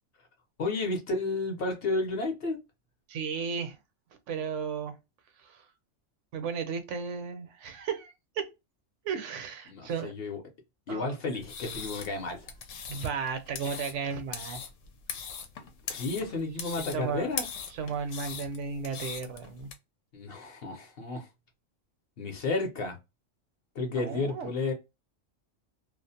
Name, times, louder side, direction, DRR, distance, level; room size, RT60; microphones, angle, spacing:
voice 1, 0.6-2.6 9.7-10.4 10.9-12.5 15.9-17.5 20.1-21.3 22.2-23.0 23.7-24.7, left 3 dB, 55° left, 0.8 m, -32 dB
voice 2, 3.1-3.8 4.3-4.9 5.4-5.7 6.3-8.5 9.0-10.1 10.9-11.2 12.9-14.6 15.3-15.4 16.7-17.3 17.7-19.7 24.0-24.5, right 6 dB, 75° right, 0.9 m, -34 dB
sound 1, 11.4-19.7, left 6 dB, 80° left, 0.9 m, -40 dB
2.4 x 2.0 x 2.6 m
omnidirectional pair, 1.3 m